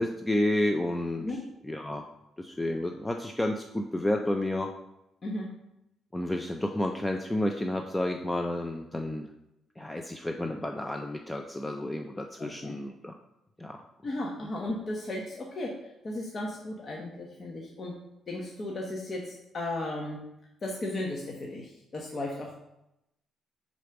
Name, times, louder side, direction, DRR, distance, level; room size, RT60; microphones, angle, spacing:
voice 1, 0.0-1.3 1.7-2.0 2.4-4.7 6.1-9.3 9.8-13.1 13.6-13.8, left 1 dB, 10° left, 4 dB, 0.5 m, -30 dB
voice 2, 12.4-12.8 14.0-18.0 18.3-20.2 20.6-22.6, left 1 dB, 40° left, -1 dB, 1.0 m, -35 dB
4.9 x 4.1 x 5.8 m, 0.87 s
cardioid pair, 90°, 0 cm